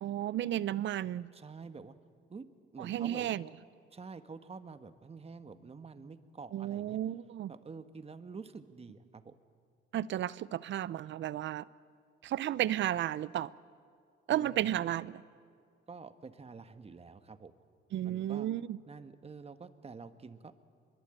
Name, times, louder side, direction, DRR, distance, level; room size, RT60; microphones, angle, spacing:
voice 1, 0.0-1.3 2.8-3.5 6.5-7.5 9.9-11.7 12.2-13.5 14.3-15.2 17.9-18.8, right 12 dB, 70° right, 0.7 m, -33 dB
voice 2, 1.3-1.9 2.3-2.4 2.7-3.4 3.9-7.0 7.5-9.3 14.3-14.6 15.9-17.5 18.0-18.5 18.9-20.6, right 4 dB, 30° right, 1.5 m, -48 dB
23.5 x 22.5 x 9.1 m
cardioid pair, 90°, 20 cm